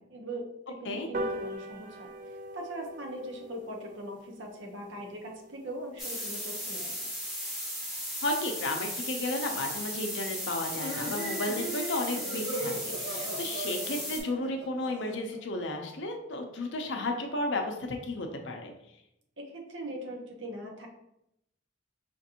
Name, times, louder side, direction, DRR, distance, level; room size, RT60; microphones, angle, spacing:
voice 1, 0.0-2.1 2.5-7.1 19.4-20.9, right 1 dB, 70° right, 1 dB, 0.8 m, -41 dB
sound 1, 1.1-7.9 8.3-8.4 8.7-8.8 9.1-9.2 9.5-9.6 9.9-10.2 10.6-10.7, right 1 dB, 40° right, 0.4 m, -42 dB
sound 2, 6.0-14.2, equal, ahead, 0.7 m, -36 dB
voice 2, 8.2-18.7, left 2 dB, 70° left, 4 dB, 0.6 m, -33 dB
sound 3, 10.7-15.4, right 1 dB, 85° right, 1.2 m, -38 dB
5.0 x 2.5 x 2.8 m, 0.81 s
head